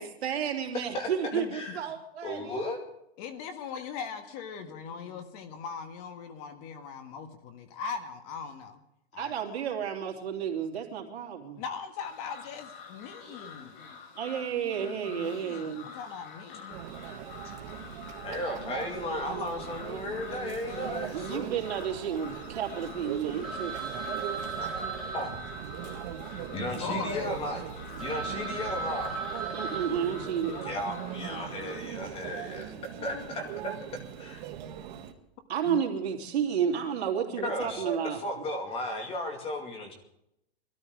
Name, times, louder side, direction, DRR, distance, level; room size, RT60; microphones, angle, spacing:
voice 1, 0.0-2.5 9.2-11.6 14.1-15.9 21.1-24.0 29.5-30.5 35.5-38.2, right 8 dB, 80° right, 2 dB, 3.1 m, -31 dB
voice 2, 1.3-1.8 3.2-8.8 9.1-9.3 11.6-13.8 15.1-16.8 26.8-27.3 33.0-33.3 35.6-35.8, left 6 dB, 40° left, 8 dB, 1.6 m, -40 dB
voice 3, 2.2-2.8 4.7-5.3 13.3-14.0 14.6-15.5 18.2-21.5 24.6-24.7 25.1-25.4 26.5-27.6 28.0-29.2 30.6-32.7 33.0-33.7 34.2-34.4 34.9-35.1 37.3-39.9, left 1 dB, 20° left, 4 dB, 2.4 m, -35 dB
sound 1, 12.0-31.8, left 5 dB, 55° left, 3.8 m, -47 dB
Conversation / Chatter / Crowd, 16.7-35.1, right 10 dB, 45° right, 1.6 m, -40 dB
Telephone, 23.4-27.2 27.7-27.8 28.0-30.9, right 4 dB, ahead, 3.5 m, -38 dB
21.0 x 13.5 x 4.8 m, 0.80 s
supercardioid pair, 165°, 31 cm